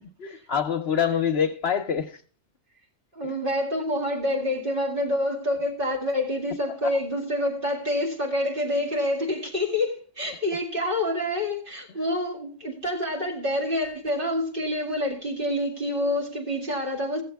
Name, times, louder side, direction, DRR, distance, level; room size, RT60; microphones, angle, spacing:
voice 1, 0.2-2.2 3.2-3.3 6.8-6.9, left 7 dB, 60° left, 0.9 m, -26 dB
voice 2, 3.1-17.2, left 1 dB, 45° right, 2.5 m, -27 dB
16.0 x 7.3 x 3.4 m
omnidirectional pair, 1.3 m